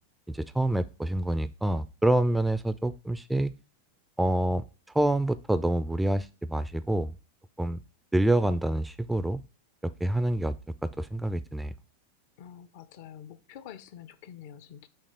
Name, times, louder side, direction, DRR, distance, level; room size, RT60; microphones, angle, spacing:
voice 1, 0.3-3.5 4.2-4.7 4.9-7.1 7.6-7.8 8.1-9.4 9.8-10.5 10.8-11.7, right 1 dB, 5° right, 13 dB, 0.3 m, -27 dB
voice 2, 12.4-14.9, left 9 dB, 50° left, 13 dB, 0.6 m, -47 dB
6.6 x 2.9 x 5.6 m, 0.31 s
figure-of-eight pair, 90°, 0 cm